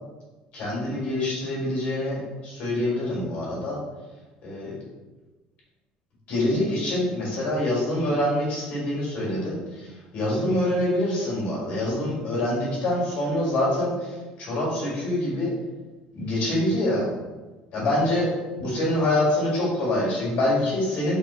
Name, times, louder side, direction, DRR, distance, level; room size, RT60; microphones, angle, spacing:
voice 1, 0.5-3.8 4.4-4.8 6.3-15.5 16.1-17.1 17.7-18.3 18.6-21.2, left 1 dB, 50° left, -4 dB, 1.5 m, -25 dB
4.0 x 3.0 x 2.3 m, 1.2 s
cardioid pair, 170°, 3 cm